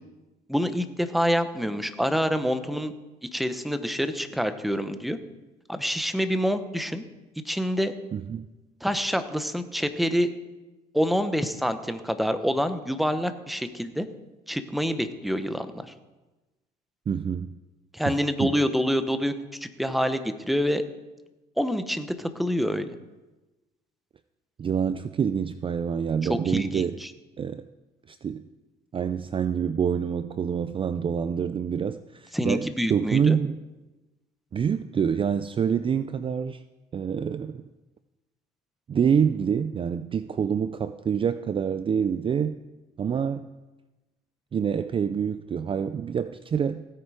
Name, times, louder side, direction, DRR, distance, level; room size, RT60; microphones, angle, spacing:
voice 1, 0.5-2.9 3.3-5.2 5.7-7.0 7.4-7.9 8.8-10.3 10.9-14.1 14.5-15.9 17.9-19.3 19.8-20.8 21.6-22.9 26.3-27.1 32.3-33.4, equal, ahead, 10 dB, 1.0 m, -26 dB
voice 2, 8.1-8.5 17.1-17.5 18.1-18.6 24.6-27.0 27.4-27.6 28.1-28.4 28.9-33.6 34.5-36.6 36.9-37.6 38.9-42.6 43.0-43.5 44.5-46.8, right 7 dB, 30° right, 12 dB, 0.4 m, -26 dB
16.5 x 9.0 x 4.9 m, 1.1 s
cardioid pair, 110°, 17 cm